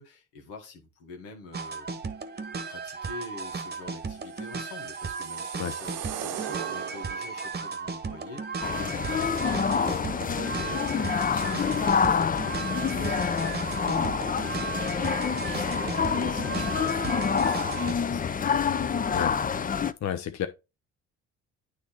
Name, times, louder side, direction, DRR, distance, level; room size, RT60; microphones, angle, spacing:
voice 1, 0.0-1.9 2.7-19.2, left 4 dB, 90° left, 1.7 m, -45 dB
sound 1, 1.5-17.9, right 5 dB, 30° right, 1.1 m, -35 dB
sound 2, 4.3-7.5, right 10 dB, 75° right, 1.0 m, -38 dB
sound 3, 8.6-19.9, left 6 dB, 25° left, 0.5 m, -27 dB
voice 2, 20.0-20.5, left 9 dB, 50° left, 0.8 m, -30 dB
9.3 x 3.2 x 4.3 m
hypercardioid pair, 60°, 35 cm